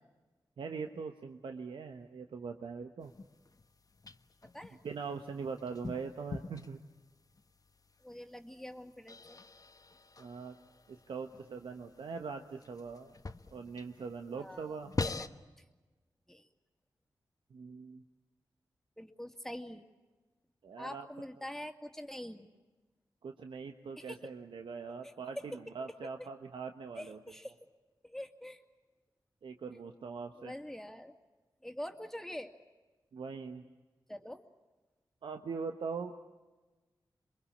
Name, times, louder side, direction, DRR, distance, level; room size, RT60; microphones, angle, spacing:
voice 1, 0.6-3.1 4.8-6.8 10.2-10.5 10.9-13.1 13.5-14.9 17.5-18.0 20.6-21.1 23.2-25.4 25.7-27.2 29.4-30.5 33.1-33.6 35.2-36.1, right 5 dB, 85° right, 5 dB, 1.3 m, -42 dB
sound 1, 3.0-15.3, left 3 dB, 45° left, 1.3 m, -45 dB
voice 2, 8.0-9.4 14.3-15.3 15.6-15.7 16.3-16.5 19.0-19.8 20.8-22.5 24.0-24.2 25.0-25.6 26.2-26.3 26.9-27.6 28.0-28.6 29.7-29.8 30.3-31.1 31.6-32.5 34.1-34.4, left 1 dB, 5° left, 5 dB, 2.7 m, -45 dB
27.5 x 23.0 x 8.6 m, 1.2 s
cardioid pair, 45°, 8 cm